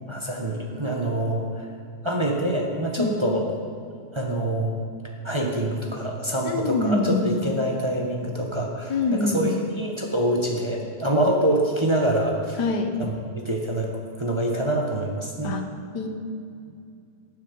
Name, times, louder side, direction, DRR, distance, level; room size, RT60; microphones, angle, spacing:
voice 1, 0.1-1.6 2.0-3.4 4.1-4.7 5.2-9.5 9.8-12.6 13.0-13.9 14.2-15.5, right 1 dB, 20° right, -1 dB, 1.3 m, -25 dB
voice 2, 6.4-7.3 8.9-9.5 12.6-12.9 15.4-15.6 15.9-16.1, left 3 dB, 75° left, 5 dB, 1.7 m, -24 dB
19.0 x 7.1 x 5.4 m, 2.5 s
omnidirectional pair, 1.8 m